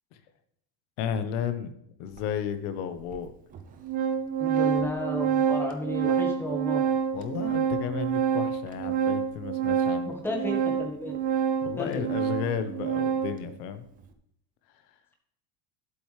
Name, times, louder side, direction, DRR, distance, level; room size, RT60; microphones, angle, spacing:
voice 1, 1.0-1.7 2.0-3.3 7.1-10.1 11.6-13.8, left 8 dB, 80° left, 10 dB, 1.2 m, -33 dB
Organ, 2.2-2.3 3.1-3.2 3.5-13.4, right 7 dB, 20° right, 0.5 m, -27 dB
voice 2, 4.4-6.8 10.2-11.2 11.8-12.1, left 1 dB, 5° left, 1 dB, 1.4 m, -33 dB
11.5 x 8.0 x 3.3 m, 0.73 s
cardioid pair, 180°, 44 cm